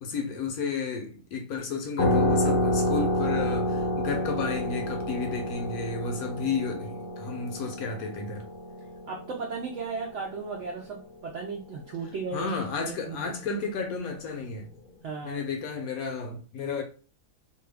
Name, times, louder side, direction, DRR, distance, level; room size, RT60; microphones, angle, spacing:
voice 1, 0.0-8.5 12.3-14.7 15.2-16.8, left 5 dB, 70° left, 1.0 m, -32 dB
sound 1, 2.0-11.2, left 1 dB, 55° left, 0.6 m, -29 dB
voice 2, 9.1-12.5 12.8-13.3 15.0-15.4, right 4 dB, 75° right, 0.6 m, -35 dB
2.6 x 2.2 x 3.2 m
omnidirectional pair, 1.7 m